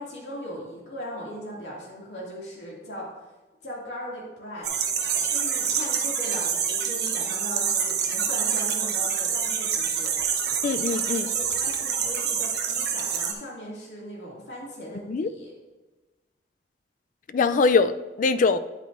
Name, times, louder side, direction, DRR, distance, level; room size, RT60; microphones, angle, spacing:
voice 1, 0.0-3.1 3.6-4.7 5.3-10.1 11.2-15.5, equal, 75° left, -5 dB, 2.4 m, -38 dB
sound 1, 4.6-13.3, right 7 dB, 65° right, 1.0 m, -26 dB
voice 2, 10.6-11.3 15.1-15.3 17.3-18.6, left 4 dB, 45° left, 12 dB, 0.4 m, -22 dB
9.7 x 8.4 x 2.6 m, 1.2 s
head